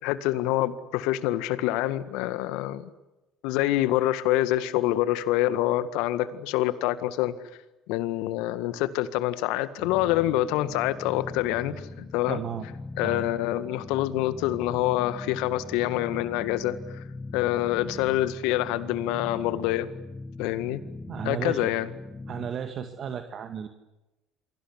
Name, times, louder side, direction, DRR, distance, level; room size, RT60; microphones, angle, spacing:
voice 1, 0.0-2.9 3.4-7.3 7.9-12.4 13.0-17.0 17.3-19.9 20.4-20.8 21.3-21.9, left 14 dB, 70° left, 12 dB, 1.8 m, -26 dB
sound 1, 9.8-22.5, left 3 dB, 20° left, 2.6 m, -41 dB
voice 2, 12.3-12.7 13.0-13.3 21.1-21.7 22.3-23.7, right 8 dB, 45° right, 7 dB, 2.1 m, -34 dB
29.0 x 23.0 x 8.2 m, 1.0 s
hypercardioid pair, 65°, 0 cm